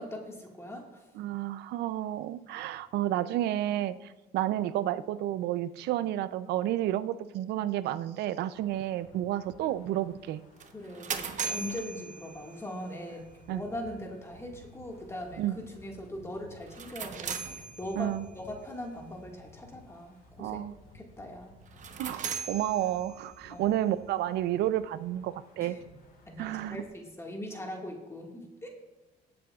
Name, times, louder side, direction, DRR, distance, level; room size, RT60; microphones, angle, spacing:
voice 1, 0.0-1.0 10.7-20.6 20.9-21.5 23.5-23.7 25.6-25.8 26.3-28.7, left 1 dB, 15° left, 0 dB, 1.8 m, -41 dB
voice 2, 1.2-10.4 13.5-13.6 15.4-15.6 18.0-18.2 20.4-20.7 22.0-25.8 26.4-26.8, right 13 dB, 80° right, 15 dB, 0.5 m, -31 dB
Wind, 8.4-26.9, left 2 dB, 65° left, 3.1 m, -56 dB
sound 1, 10.6-12.8 16.6-18.3 21.7-23.5, right 6 dB, 45° right, 1.0 m, -38 dB
19.5 x 7.7 x 2.4 m, 1.2 s
cardioid pair, 110°, 17 cm